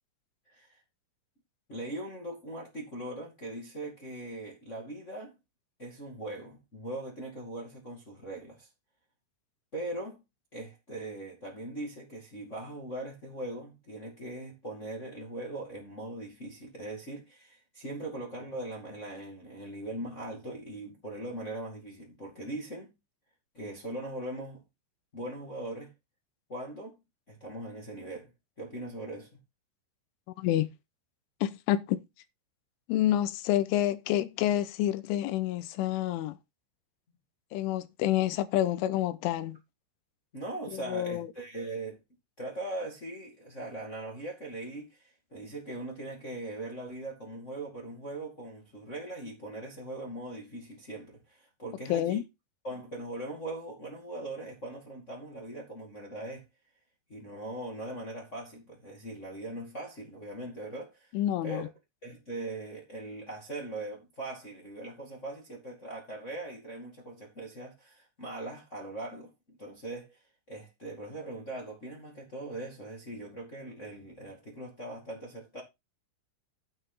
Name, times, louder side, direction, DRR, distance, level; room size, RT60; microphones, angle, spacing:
voice 1, 0.5-0.8 1.7-5.3 5.8-8.7 9.7-10.2 10.5-22.9 23.5-24.6 25.1-25.9 26.5-27.0 27.3-28.3 28.6-29.3 40.3-42.0 42.4-52.2 52.6-56.4 57.1-61.1 61.4-61.7 62.0-75.6, right 1 dB, 55° left, 0.8 m, -40 dB
voice 2, 30.4-30.7 31.4-32.0 32.9-36.4 37.5-39.6 40.7-41.3 51.9-52.2 61.1-61.7, left 13 dB, 90° left, 3.2 m, -28 dB
8.8 x 8.4 x 3.9 m
omnidirectional pair, 5.6 m